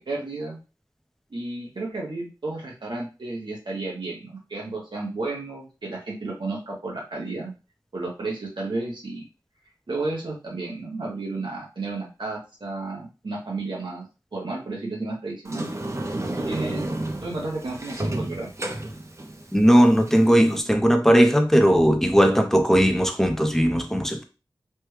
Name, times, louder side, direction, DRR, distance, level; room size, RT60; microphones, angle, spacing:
voice 1, 0.1-0.6 1.3-7.5 7.9-9.2 9.9-14.1 14.3-15.7 16.4-16.9 17.2-18.5, right 3 dB, 70° right, 0.9 m, -32 dB
Sliding door, 15.4-20.6, right 1 dB, 35° right, 0.6 m, -32 dB
voice 2, 19.5-24.2, equal, 5° left, 0.6 m, -18 dB
3.3 x 2.2 x 3.2 m
wide cardioid pair, 55°, 8 cm